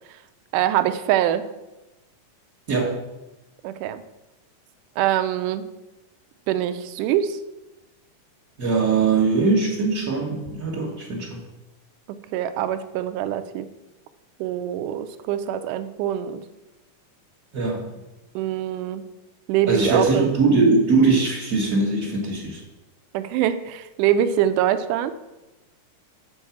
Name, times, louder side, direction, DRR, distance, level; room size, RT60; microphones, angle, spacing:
voice 1, 0.5-1.4 3.6-4.0 5.0-5.7 6.5-7.4 12.3-13.7 14.4-16.4 18.4-19.0 19.5-20.3 23.1-25.1, right 11 dB, 85° right, 11 dB, 2.1 m, -24 dB
voice 2, 8.6-11.4 17.5-17.9 19.7-22.6, right 4 dB, 55° right, -7 dB, 0.9 m, -21 dB
7.1 x 4.7 x 7.0 m, 1.0 s
omnidirectional pair, 3.7 m